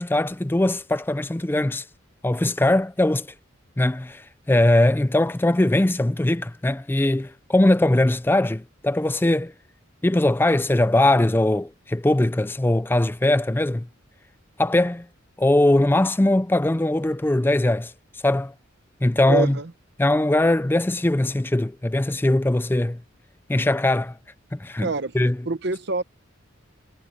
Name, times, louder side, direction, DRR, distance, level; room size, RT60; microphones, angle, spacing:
voice 1, 0.0-1.8 2.2-3.3 3.8-9.5 10.0-13.9 14.6-15.1 15.4-17.9 18.2-18.5 19.0-19.6 20.0-23.0 23.5-24.2 24.5-24.9 25.1-25.4, left 1 dB, 10° left, 0.4 m, -21 dB
voice 2, 19.3-19.7 24.8-25.1 25.4-26.0, right 4 dB, 55° right, 0.9 m, -26 dB
head